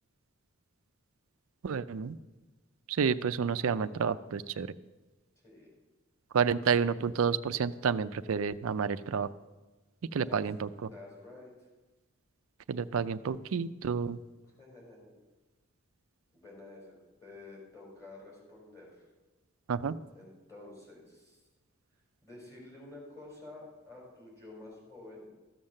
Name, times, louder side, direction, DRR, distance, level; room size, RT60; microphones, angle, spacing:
voice 1, 1.6-2.2 2.9-4.7 6.3-9.3 10.1-10.7 12.7-14.2 19.7-20.0, right 6 dB, 65° right, 13 dB, 0.4 m, -30 dB
voice 2, 10.2-11.7 14.6-15.1 16.3-19.0 20.1-21.4 22.2-25.3, left 2 dB, 15° left, -3 dB, 4.8 m, -50 dB
14.0 x 7.3 x 6.4 m, 1.2 s
head